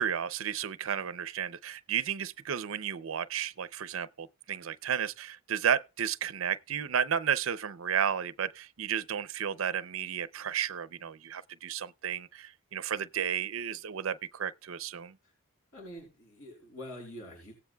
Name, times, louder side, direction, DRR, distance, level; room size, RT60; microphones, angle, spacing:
voice 1, 0.0-15.2, right 8 dB, 70° right, 0.5 m, -33 dB
voice 2, 15.7-17.5, equal, 85° left, 4.1 m, -45 dB
17.5 x 8.2 x 2.3 m
head